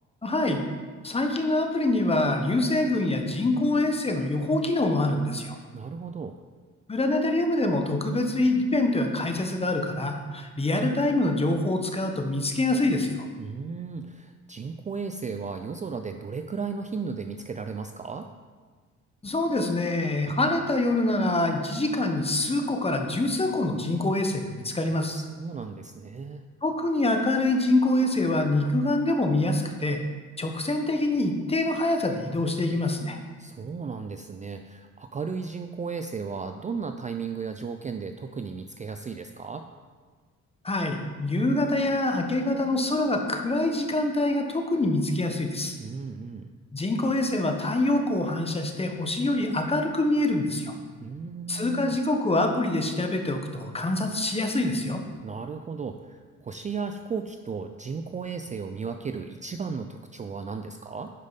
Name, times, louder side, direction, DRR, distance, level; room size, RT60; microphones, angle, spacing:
voice 1, 0.2-0.6 1.0-5.6 6.9-13.3 19.2-25.2 26.6-30.0 30.4-33.2 40.6-45.8 46.7-50.7 51.5-55.0, left 2 dB, 20° left, 4 dB, 1.1 m, -25 dB
voice 2, 5.7-6.4 13.4-18.3 25.1-26.4 33.4-39.6 45.8-46.5 51.0-52.0 55.2-61.1, right 5 dB, 25° right, 7 dB, 0.4 m, -35 dB
10.5 x 5.0 x 4.1 m, 1.5 s
cardioid pair, 90°, 30 cm